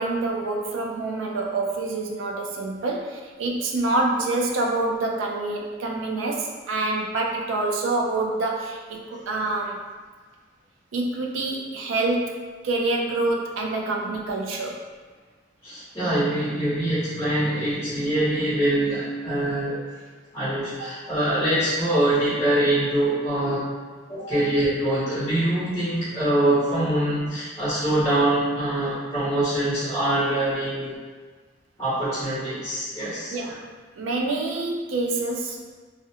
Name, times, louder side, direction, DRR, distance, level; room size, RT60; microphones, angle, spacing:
voice 1, 0.0-9.8 10.9-14.8 20.8-20.9 24.3-24.4 33.3-33.7 34.0-35.6, right 2 dB, 85° right, 0 dB, 0.4 m, -26 dB
voice 2, 15.6-19.8 20.3-23.6 24.1-30.9 31.8-33.3, right 1 dB, 15° left, -13 dB, 0.8 m, -24 dB
2.4 x 2.1 x 2.8 m, 1.4 s
head